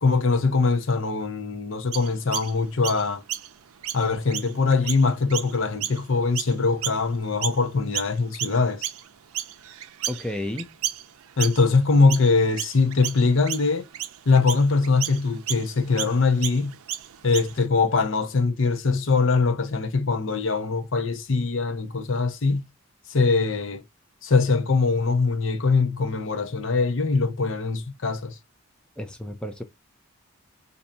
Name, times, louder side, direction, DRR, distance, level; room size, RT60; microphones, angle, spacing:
voice 1, 0.0-3.2 3.9-8.9 11.4-13.9 14.3-16.7 17.2-22.6 23.1-23.8 24.2-28.4, left 4 dB, 65° left, 0.7 m, -22 dB
Chirp tweet, 1.9-7.6 7.9-17.7, right 12 dB, 90° right, 0.5 m, -34 dB
voice 2, 10.1-10.7 29.0-29.6, left 1 dB, 5° left, 0.4 m, -32 dB
4.4 x 2.7 x 2.5 m
head